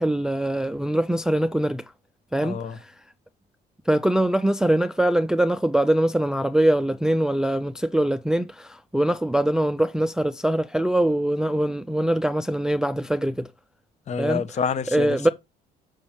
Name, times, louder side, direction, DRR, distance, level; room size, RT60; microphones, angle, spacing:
voice 1, 0.0-1.9 2.3-2.9 3.9-13.5 14.2-14.4 14.9-15.3, right 1 dB, 5° right, 0.3 m, -23 dB
voice 2, 2.4-2.8 14.1-15.3, left 6 dB, 45° left, 0.8 m, -28 dB
6.2 x 6.1 x 4.4 m
cardioid pair, 110°, 17 cm